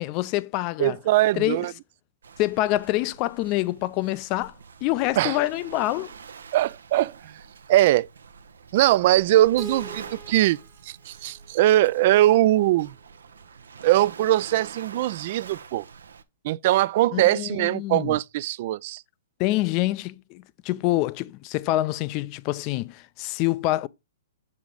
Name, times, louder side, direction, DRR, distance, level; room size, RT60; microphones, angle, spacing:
voice 1, 0.0-1.0 1.4-1.6 2.4-4.5 4.8-6.1 17.1-18.2 19.4-23.9, left 17 dB, 35° left, 0.4 m, -26 dB
voice 2, 0.8-1.7 5.2-5.4 6.5-7.3 7.7-8.1 8.7-10.6 10.8-12.9 13.8-15.8 16.4-19.0, right 15 dB, 50° right, 0.3 m, -21 dB
Waves surf, 2.2-16.2, right 6 dB, 85° right, 0.8 m, -46 dB
Keyboard (musical), 9.6-12.5, equal, 10° right, 0.8 m, -45 dB
7.0 x 4.8 x 3.8 m
hypercardioid pair, 140°, 0 cm